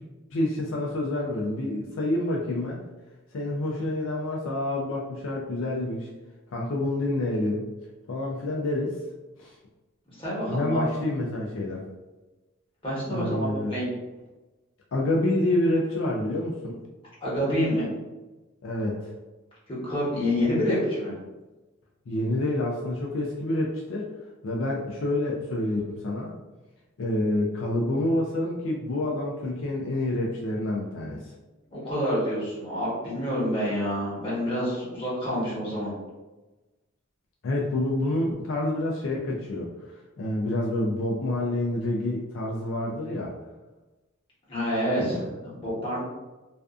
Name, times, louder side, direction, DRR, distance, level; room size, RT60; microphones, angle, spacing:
voice 1, 0.3-2.8 3.3-6.1 6.5-7.6 8.1-8.9 9.4-9.5 10.5-11.8 13.1-13.8 14.9-16.8 18.6-19.1 22.1-24.1 24.4-26.3 27.0-31.2 37.4-39.7 40.2-43.3 45.1-45.4, left 1 dB, 70° left, -2 dB, 0.4 m, -28 dB
voice 2, 10.1-10.9 12.8-13.9 17.2-17.9 19.8-21.1 31.7-35.9 44.5-46.0, equal, 25° left, -8 dB, 1.0 m, -27 dB
2.5 x 2.3 x 2.3 m, 1.1 s
head